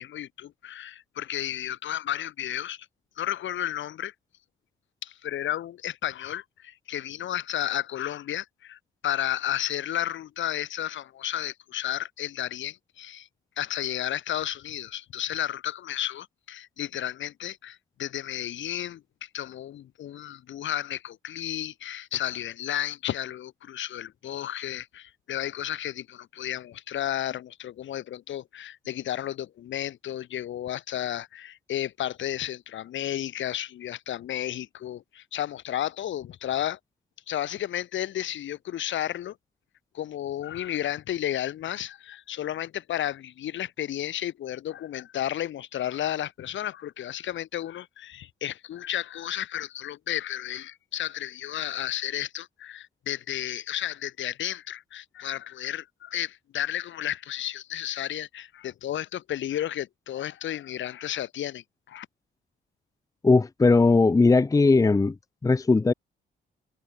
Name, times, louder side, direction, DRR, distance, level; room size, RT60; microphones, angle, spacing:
voice 1, 0.0-2.9 3.2-4.1 5.0-13.3 13.6-36.8 37.3-39.4 39.9-62.1, left 11 dB, 70° left, 3.1 m, -32 dB
voice 2, 63.2-65.1 65.4-65.9, left 3 dB, 15° left, 0.7 m, -19 dB
cardioid pair, 90°, 20 cm